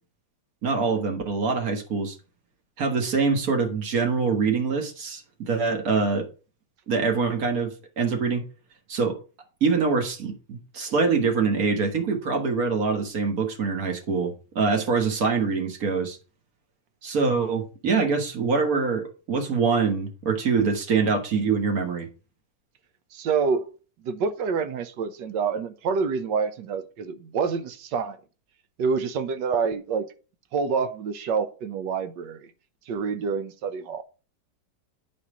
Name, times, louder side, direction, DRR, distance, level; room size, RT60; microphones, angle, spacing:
voice 1, 0.6-2.2 2.8-6.3 6.9-8.4 8.9-9.2 9.6-16.2 17.0-22.1, right 4 dB, 55° right, 1.8 m, -24 dB
voice 2, 23.1-23.7 24.0-28.2 28.8-30.1 30.5-32.5 32.9-34.0, right 5 dB, 75° right, 1.4 m, -27 dB
9.8 x 4.3 x 4.9 m
omnidirectional pair, 2.0 m